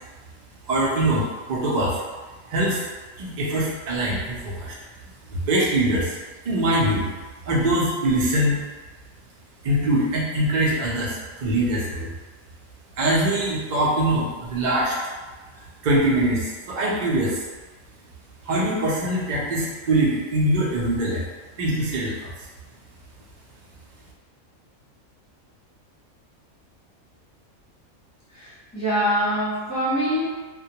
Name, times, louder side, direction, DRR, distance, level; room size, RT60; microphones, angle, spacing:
voice 1, 0.7-2.0 2.5-2.8 3.2-4.8 5.3-6.2 6.4-7.1 7.5-8.6 9.6-12.1 13.0-14.9 15.8-17.4 18.4-21.2 21.6-22.3, right 1 dB, 55° right, -5 dB, 0.5 m, -23 dB
voice 2, 28.3-30.2, equal, 15° left, -10 dB, 0.6 m, -24 dB
2.2 x 2.1 x 2.8 m, 1.3 s
omnidirectional pair, 1.4 m